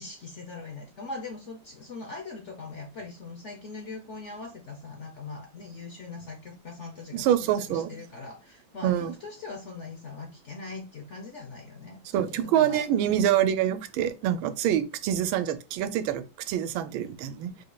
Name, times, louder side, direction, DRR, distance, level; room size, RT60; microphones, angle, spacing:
voice 1, 0.0-7.3 7.6-12.8, left 3 dB, 60° left, 0.8 m, -41 dB
voice 2, 7.1-7.9 8.8-9.1 12.1-17.5, right 10 dB, 85° right, 1.4 m, -26 dB
5.0 x 4.2 x 2.2 m
omnidirectional pair, 2.1 m